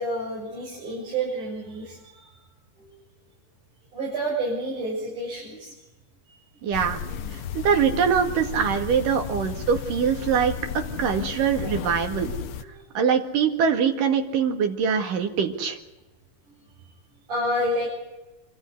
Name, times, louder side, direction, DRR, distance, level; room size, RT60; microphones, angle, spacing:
voice 1, 0.0-2.3 2.8-3.0 3.9-5.8 6.3-6.4 6.7-6.8 12.6-12.8 16.5-17.9, right 1 dB, 70° right, -6 dB, 8.3 m, -30 dB
voice 2, 6.6-7.0 7.3-10.6 11.0-12.3 13.0-15.8, right 7 dB, 90° right, 5 dB, 3.6 m, -23 dB
sound 1, 6.7-12.6, left 8 dB, 80° left, 1.2 m, -34 dB
26.5 x 13.5 x 9.7 m, 1.1 s
omnidirectional pair, 3.7 m